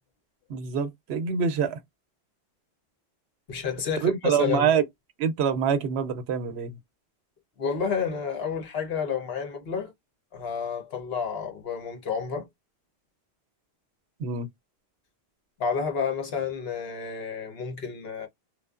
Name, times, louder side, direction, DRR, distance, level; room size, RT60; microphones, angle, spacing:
voice 1, 0.5-1.8 4.0-4.8 5.2-6.8 14.2-14.5, right 7 dB, 75° right, 0.8 m, -25 dB
voice 2, 3.5-4.7 7.6-9.9 10.3-12.5 15.6-18.3, left 6 dB, 70° left, 1.1 m, -30 dB
3.2 x 2.0 x 2.3 m
omnidirectional pair, 1.1 m